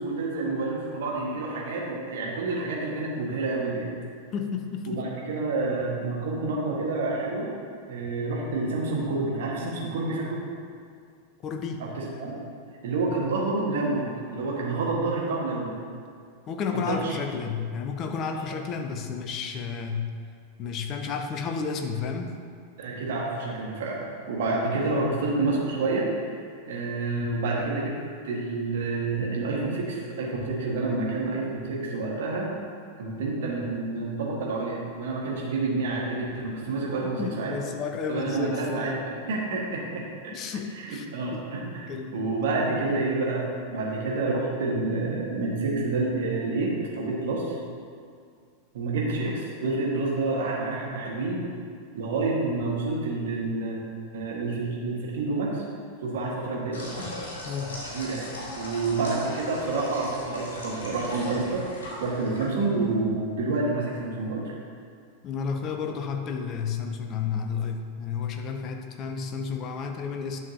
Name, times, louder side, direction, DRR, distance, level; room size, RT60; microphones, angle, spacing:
voice 1, 0.0-3.9 4.9-7.5 7.9-10.4 11.8-12.4 12.8-15.7 16.7-17.1 18.3-18.5 22.8-26.1 26.6-27.9 28.2-32.5 33.0-37.5 38.1-40.3 40.7-47.6 48.7-51.4 51.9-53.8 54.1-55.6 56.0-56.8 57.9-58.3 58.6-61.6 62.0-64.5, right 3 dB, 55° right, -3 dB, 1.6 m, -28 dB
voice 2, 4.3-5.0 11.4-11.8 16.5-20.1 20.6-22.3 37.2-39.0 40.3-41.1 41.3-41.4 41.9-42.2 42.8-42.9 56.2-56.4 57.4-57.8 65.2-70.4, left 6 dB, 35° left, 4 dB, 0.8 m, -32 dB
sound 1, 56.7-63.0, left 1 dB, 65° left, 2.1 m, -39 dB
10.5 x 6.3 x 2.9 m, 2.2 s
figure-of-eight pair, 90°, 0 cm